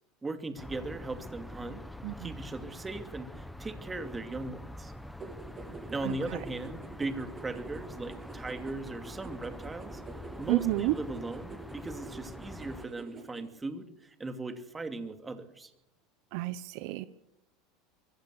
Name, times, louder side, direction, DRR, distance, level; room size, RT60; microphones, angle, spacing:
voice 1, 0.2-1.8 2.2-4.9 5.9-10.0 10.4-15.7, right 2 dB, 15° right, 7 dB, 2.7 m, -38 dB
sound 1, 0.6-12.9, left 1 dB, 5° left, 1.4 m, -45 dB
voice 2, 2.0-2.3 6.0-6.4 10.5-10.9 16.3-17.1, right 16 dB, 65° right, 14 dB, 1.0 m, -31 dB
sound 2, 5.2-13.5, right 4 dB, 35° right, 7.9 m, -47 dB
23.5 x 15.5 x 8.3 m, 0.83 s
supercardioid pair, 105°, 0 cm